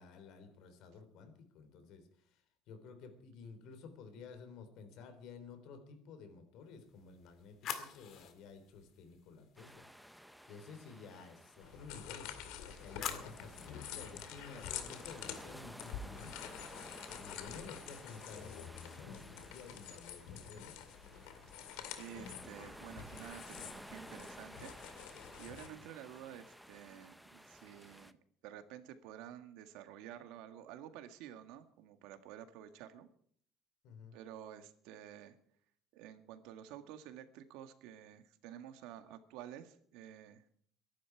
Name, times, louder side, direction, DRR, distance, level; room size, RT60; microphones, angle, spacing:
voice 1, 0.0-2.4 2.7-9.9 10.5-16.6 17.1-20.8 25.4-25.8 33.8-34.2, left 5 dB, 60° left, 8 dB, 3.7 m, -53 dB
sound 1, 6.8-9.9 12.3-13.8, left 9 dB, 45° left, 2.0 m, -47 dB
sound 2, 9.6-28.1, equal, ahead, 0.6 m, -55 dB
sound 3, 11.6-25.7, left 9 dB, 90° left, 2.3 m, -48 dB
voice 2, 22.0-24.7 25.4-28.2 28.4-33.1 34.1-35.4 35.9-40.4, right 10 dB, 80° right, 8 dB, 1.8 m, -51 dB
22.5 x 11.5 x 4.7 m, 0.62 s
cardioid pair, 160°, 0 cm